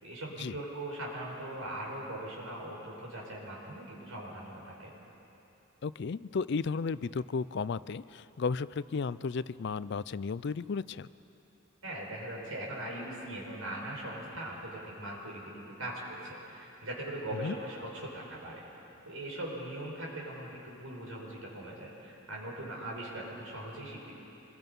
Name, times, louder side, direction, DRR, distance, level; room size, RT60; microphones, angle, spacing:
voice 1, 0.0-4.9 11.8-18.6 19.1-24.1, right 1 dB, 85° right, -2 dB, 5.5 m, -40 dB
voice 2, 5.8-11.1 17.4-17.6, left 5 dB, 55° left, 17 dB, 0.4 m, -34 dB
26.5 x 22.0 x 5.4 m, 3.0 s
head